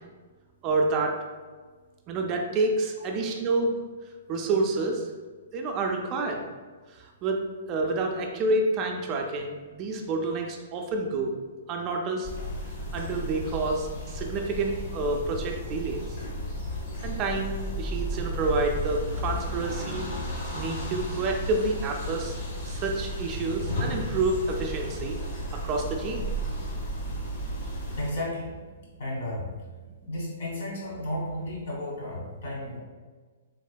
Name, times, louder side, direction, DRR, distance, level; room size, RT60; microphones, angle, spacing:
voice 1, 0.6-1.2 2.1-3.7 4.3-5.1 5.5-6.4 6.9-7.4 7.7-11.3 11.7-12.3 12.9-16.0 17.0-22.4 22.6-25.2 25.6-26.3, right 3 dB, 30° right, 2 dB, 0.4 m, -28 dB
sound 1, 12.2-28.1, equal, 50° left, 1.0 m, -33 dB
voice 2, 27.9-28.5 29.0-29.5 30.1-32.8, left 1 dB, 70° left, -4 dB, 1.4 m, -33 dB
3.5 x 3.2 x 2.2 m, 1.4 s
hypercardioid pair, 140°, 0 cm